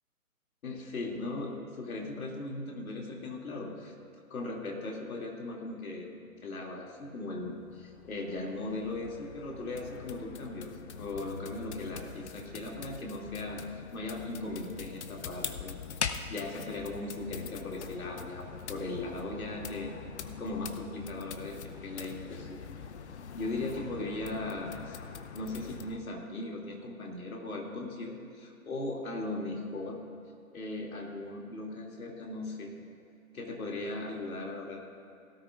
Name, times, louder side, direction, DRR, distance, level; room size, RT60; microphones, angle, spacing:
voice 1, 0.6-3.9 4.3-6.1 6.4-13.6 13.9-15.8 16.3-19.9 20.2-22.6 23.3-25.0 25.3-30.0 30.5-32.7 33.3-34.8, left 2 dB, 70° left, -1 dB, 2.8 m, -38 dB
sound 1, 7.5-26.0, left 7 dB, 50° left, 0.7 m, -43 dB
17.5 x 13.0 x 2.5 m, 2.6 s
hypercardioid pair, 145°, 44 cm